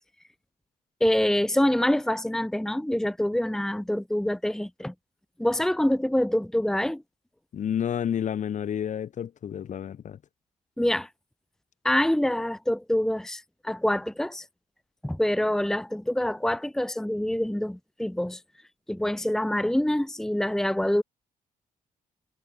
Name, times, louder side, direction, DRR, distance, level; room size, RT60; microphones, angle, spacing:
voice 1, 1.0-4.9 5.4-7.0 10.8-11.1 11.8-14.4 15.0-18.4 18.9-21.0, left 1 dB, 5° left, 1.5 m, -26 dB
voice 2, 7.5-10.2, left 9 dB, 60° left, 4.3 m, -30 dB
cardioid pair, 135°, 14 cm